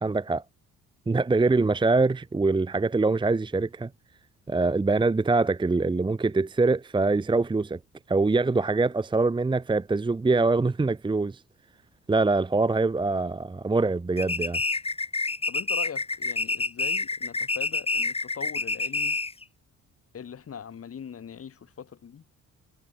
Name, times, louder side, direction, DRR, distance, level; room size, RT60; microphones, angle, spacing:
voice 1, 0.0-0.4 1.1-3.9 4.5-7.8 8.1-11.4 12.1-14.6, right 3 dB, 15° right, 0.8 m, -24 dB
sound 1, 14.2-19.4, left 3 dB, 20° left, 1.9 m, -28 dB
voice 2, 15.5-19.2 20.1-22.2, left 7 dB, 50° left, 3.9 m, -41 dB
cardioid pair, 90°, 30 cm